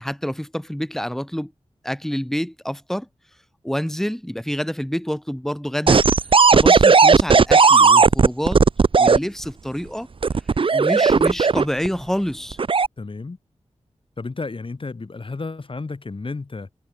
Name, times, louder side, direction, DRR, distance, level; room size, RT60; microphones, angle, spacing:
voice 1, 0.0-1.5 1.8-3.1 3.6-6.0 6.5-8.6 8.9-10.1 10.7-12.6, equal, 5° left, 3.5 m, -27 dB
sound 1, 5.9-9.2 10.2-11.9 12.5-12.9, right 5 dB, 50° right, 0.6 m, -14 dB
voice 2, 13.0-13.4 14.2-16.7, left 3 dB, 50° left, 3.6 m, -32 dB
wide cardioid pair, 75°, 12 cm